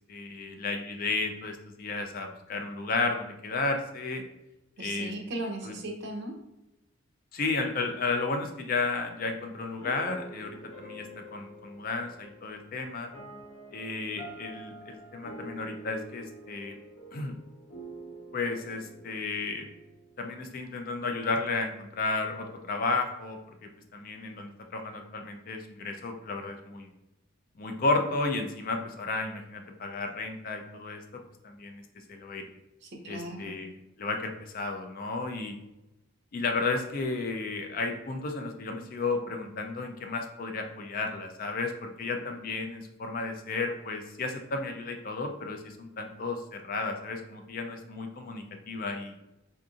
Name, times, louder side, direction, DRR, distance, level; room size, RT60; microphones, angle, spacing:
voice 1, 0.1-4.2 4.8-5.1 5.6-5.7 7.3-11.1 11.3-13.1 13.7-16.8 17.1-17.3 18.3-19.7 20.2-26.9 27.6-31.0 31.4-31.8 32.1-32.5 33.1-35.6 36.3-49.1, left 3 dB, 45° left, 5 dB, 0.4 m, -33 dB
voice 2, 4.8-6.3 32.8-33.6, right 1 dB, 55° right, 2 dB, 0.6 m, -37 dB
sound 1, 9.8-20.9, right 1 dB, 75° left, 1.0 m, -47 dB
3.7 x 2.5 x 2.4 m, 0.93 s
head